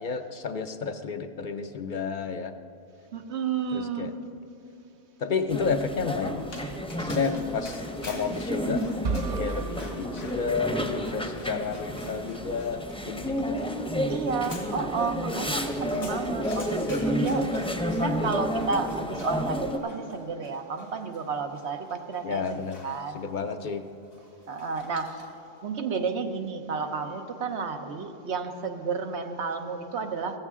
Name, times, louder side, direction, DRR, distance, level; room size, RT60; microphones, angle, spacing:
voice 1, 0.0-2.5 3.7-4.1 5.2-6.5 7.0-8.8 9.4-12.8 13.1-13.6 22.2-22.8 23.1-23.8, left 5 dB, 55° left, 8 dB, 0.6 m, -31 dB
voice 2, 3.1-4.1 13.4-13.7 14.1-17.5 18.0-22.6 22.8-23.2 24.5-25.3 25.6-30.4, right 5 dB, 85° right, 6 dB, 1.2 m, -31 dB
sound 1, 5.5-19.8, equal, 5° left, 0.6 m, -31 dB
Dog, 6.4-25.5, left 2 dB, 80° left, 2.3 m, -49 dB
sound 2, 9.0-11.1, right 4 dB, 50° right, 0.6 m, -34 dB
15.0 x 14.5 x 3.6 m, 2.6 s
omnidirectional pair, 1.1 m